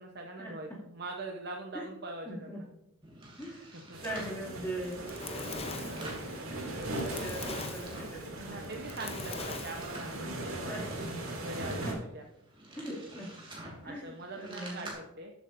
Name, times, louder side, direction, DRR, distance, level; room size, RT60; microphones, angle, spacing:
voice 1, 0.0-2.7 3.7-4.0 8.4-10.9 11.4-12.2 13.8-15.3, right 2 dB, 50° right, 2 dB, 0.9 m, -42 dB
voice 2, 2.3-2.6 3.4-3.7 4.0-5.0 5.3-5.6 5.8-8.8 10.7-10.8 11.8-11.9 12.8-13.3 13.8-14.9, right 1 dB, 10° left, -4 dB, 2.5 m, -41 dB
sound 1, 3.0-4.4 4.9-6.3 6.7-8.2 8.6-10.1 10.6-14.9, right 1 dB, 25° right, 2.8 m, -49 dB
sound 2, 3.9-11.9, right 1 dB, 75° right, 2.6 m, -39 dB
Fire, 4.7-10.2, left 4 dB, 30° left, 0.8 m, -42 dB
13.5 x 7.9 x 2.6 m, 0.93 s
head